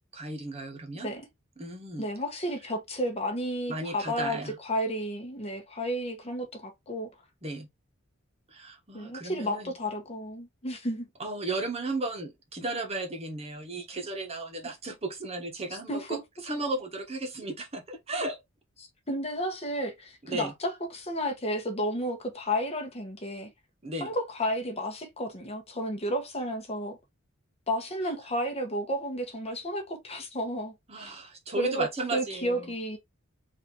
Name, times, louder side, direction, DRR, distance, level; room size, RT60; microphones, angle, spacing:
voice 1, 0.1-1.1 1.6-2.1 3.7-4.6 7.4-7.7 8.5-9.7 11.2-18.4 20.3-20.5 23.8-24.1 30.9-32.7, right 2 dB, 30° right, 1.0 m, -35 dB
voice 2, 2.0-7.1 8.9-11.1 15.9-16.2 19.1-23.5 24.0-27.0 27.7-31.1 31.6-33.0, equal, 30° left, 1.1 m, -32 dB
4.1 x 2.7 x 4.3 m
head